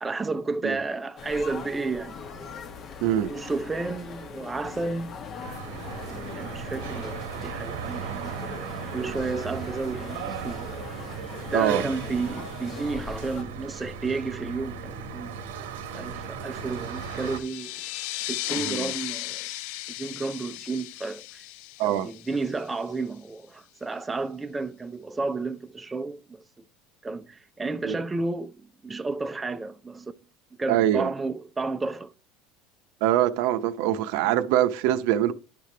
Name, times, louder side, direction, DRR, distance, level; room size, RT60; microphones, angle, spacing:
voice 1, 0.0-2.2 3.1-5.3 6.0-8.4 8.9-10.7 11.3-15.4 15.9-17.7 18.2-19.5 20.0-21.5 21.8-26.4 27.0-30.1 30.6-32.1 34.2-34.4, right 3 dB, 15° right, 0.5 m, -32 dB
sound 1, 1.2-13.4, left 5 dB, 40° left, 1.0 m, -41 dB
voice 2, 3.0-3.3 11.5-11.8 18.6-18.9 21.8-22.1 27.8-28.0 30.7-31.1 33.0-35.3, right 12 dB, 70° right, 0.7 m, -23 dB
sound 2, 5.4-17.4, right 6 dB, 90° right, 1.0 m, -36 dB
sound 3, 16.7-22.9, left 16 dB, 70° left, 0.4 m, -36 dB
11.0 x 5.1 x 3.3 m
supercardioid pair, 105°, 0 cm